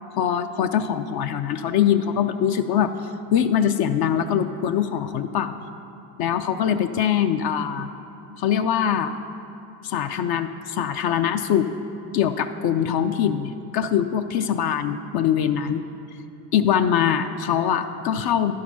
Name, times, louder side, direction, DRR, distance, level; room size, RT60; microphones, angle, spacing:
voice 1, 0.2-2.9 3.3-5.5 6.2-7.9 8.4-9.1 9.8-11.7 12.1-15.8 16.5-18.5, left 9 dB, 50° left, 8 dB, 0.5 m, -23 dB
11.0 x 4.8 x 5.8 m, 2.8 s
supercardioid pair, 70°, 49 cm